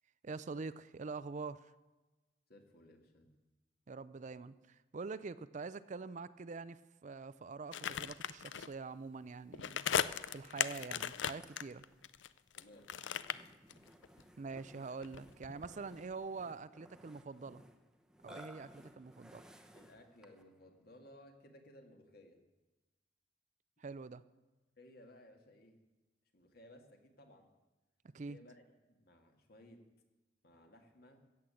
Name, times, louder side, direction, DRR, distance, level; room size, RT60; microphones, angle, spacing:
voice 1, 0.2-1.7 3.9-9.9 10.3-11.8 14.4-17.6 18.2-19.4 23.8-24.2 28.1-28.4, right 4 dB, 40° right, 15 dB, 0.4 m, -45 dB
voice 2, 2.5-3.4 12.5-13.0 15.8-15.9 19.7-22.4 24.8-25.8 26.3-27.5 28.2-29.9 30.4-31.3, left 1 dB, 55° left, 4 dB, 2.0 m, -59 dB
sound 1, 7.7-8.7 9.5-12.6 12.9-14.2 14.5-16.1 16.4-16.5, left 8 dB, 90° left, 0.5 m, -38 dB
Burping eructation, 9.8-20.5, equal, 5° right, 0.8 m, -60 dB
14.5 x 8.5 x 7.8 m, 1.2 s
head